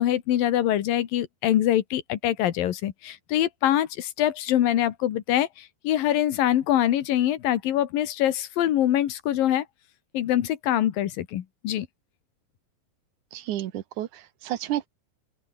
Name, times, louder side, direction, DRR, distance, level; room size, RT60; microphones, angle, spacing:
voice 1, 0.0-9.7 10.1-11.9, left 12 dB, 70° left, 3.1 m, -24 dB
voice 2, 13.3-14.9, right 13 dB, 65° right, 2.2 m, -31 dB
open air
omnidirectional pair, 4.3 m